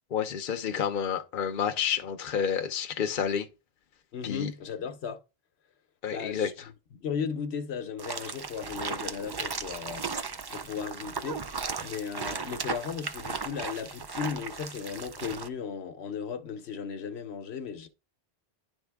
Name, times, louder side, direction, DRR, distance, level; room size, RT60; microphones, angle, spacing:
voice 1, 0.1-3.5 4.2-4.5 6.0-6.5, left 7 dB, 55° left, 0.8 m, -29 dB
voice 2, 4.1-5.2 6.1-6.5 6.9-11.4 11.8-17.9, left 6 dB, 80° left, 1.1 m, -36 dB
sound 1, 8.0-15.5, right 5 dB, 40° right, 0.3 m, -36 dB
10.5 x 3.6 x 3.5 m
omnidirectional pair, 1.1 m